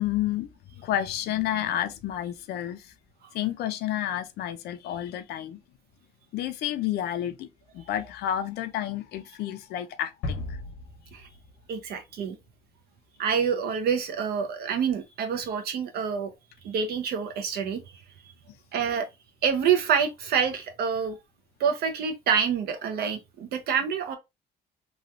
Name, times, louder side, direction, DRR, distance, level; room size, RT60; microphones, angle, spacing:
voice 1, 0.0-2.9 3.3-5.6 6.3-7.5 7.7-10.6, left 12 dB, 70° left, 0.6 m, -30 dB
sound 1, 10.2-12.1, left 2 dB, 85° left, 1.2 m, -36 dB
voice 2, 11.7-12.4 13.2-16.3 16.6-18.0 18.7-19.1 19.4-21.2 21.6-24.2, right 7 dB, 70° right, 0.8 m, -27 dB
3.1 x 2.4 x 2.6 m
cardioid pair, 110°, 17 cm